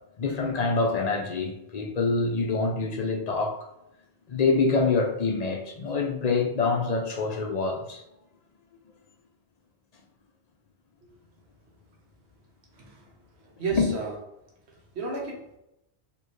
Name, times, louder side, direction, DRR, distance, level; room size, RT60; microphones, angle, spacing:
voice 1, 0.2-3.6 4.3-8.0 13.7-13.9, left 4 dB, 45° left, 3 dB, 0.6 m, -26 dB
voice 2, 13.6-14.1 14.9-15.5, right 4 dB, 75° right, 0 dB, 1.3 m, -32 dB
4.5 x 2.8 x 3.1 m, 0.84 s
omnidirectional pair, 1.1 m